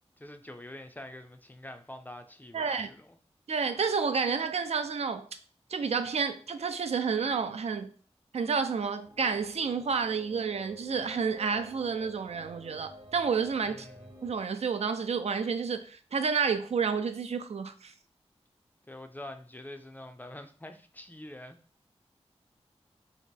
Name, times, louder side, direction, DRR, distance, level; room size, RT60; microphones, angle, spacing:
voice 1, 0.2-3.1 13.7-14.1 18.9-21.6, left 1 dB, 15° left, 0.4 m, -45 dB
voice 2, 2.5-2.9 3.5-5.3 5.7-7.9 8.3-13.9 14.2-17.9, right 5 dB, 70° right, 0.4 m, -30 dB
sound 1, 9.0-14.3, right 1 dB, 40° right, 0.8 m, -51 dB
3.0 x 2.9 x 4.5 m
wide cardioid pair, 90°, 11 cm